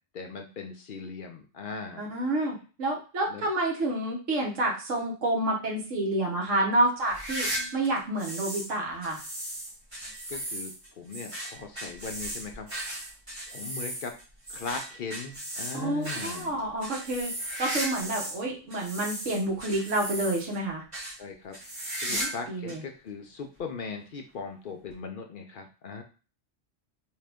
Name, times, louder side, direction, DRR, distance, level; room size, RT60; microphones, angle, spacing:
voice 1, 0.1-2.0 3.3-3.5 10.3-10.7 11.0-12.7 13.5-14.1 14.5-16.5 21.2-21.6 22.0-26.0, left 5 dB, 60° left, 3 dB, 0.6 m, -39 dB
voice 2, 2.0-7.5 7.7-9.2 15.7-17.3 17.6-20.8 22.1-22.8, right 2 dB, 75° right, -1 dB, 1.4 m, -29 dB
sound 1, 7.0-8.7 9.0-18.4 18.7-20.6 20.9-21.2 21.5-22.4 22.7-22.8 23.6-23.7 24.9-25.0, right 1 dB, 25° right, 1.4 m, -36 dB
3.7 x 2.9 x 3.4 m, 0.36 s
omnidirectional pair, 1.3 m